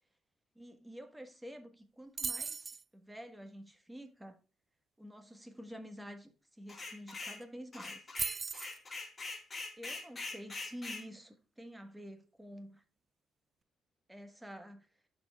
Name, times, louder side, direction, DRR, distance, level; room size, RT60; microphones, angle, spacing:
voice 1, 0.5-4.4 5.0-6.3 6.6-8.0 9.8-12.8 14.1-14.9, equal, 10° right, 1.3 m, -49 dB
sound 1, 2.2-2.8 6.8-6.9 7.1-7.4 8.2-8.8, right 5 dB, 35° right, 0.3 m, -37 dB
sound 2, 6.7-7.4 7.7-11.0, left 3 dB, 30° left, 1.8 m, -43 dB
11.5 x 4.4 x 2.3 m
cardioid pair, 90°, 0 cm